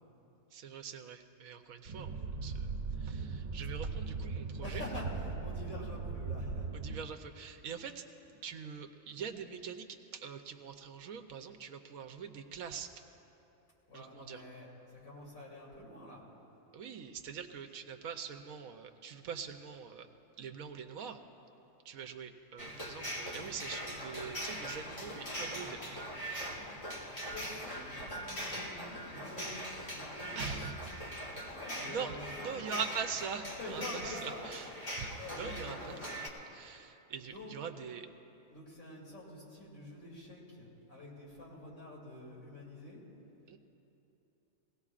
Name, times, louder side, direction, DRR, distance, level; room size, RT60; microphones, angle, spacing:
voice 1, 0.5-2.7 3.0-4.8 6.7-8.0 8.4-9.9 10.1-12.9 13.9-14.4 16.7-20.1 20.4-21.2 21.8-25.8 30.4-30.7 31.8-32.1 32.4-34.7 34.9-35.1 35.4-36.0 36.5-38.1 43.5-43.6, right 6 dB, 75° right, 6 dB, 1.1 m, -43 dB
sound 1, 1.8-7.0, right 4 dB, 60° right, 1.6 m, -39 dB
voice 2, 4.6-6.7 13.9-16.2 26.4-26.6 26.9-32.3 32.5-32.8 33.6-34.6 35.1-36.0 37.3-37.6 38.5-43.0, left 1 dB, 75° left, -6 dB, 3.5 m, -47 dB
sound 2, 22.6-36.3, equal, 25° left, 1.5 m, -41 dB
21.5 x 17.5 x 2.4 m, 3.0 s
omnidirectional pair, 1.5 m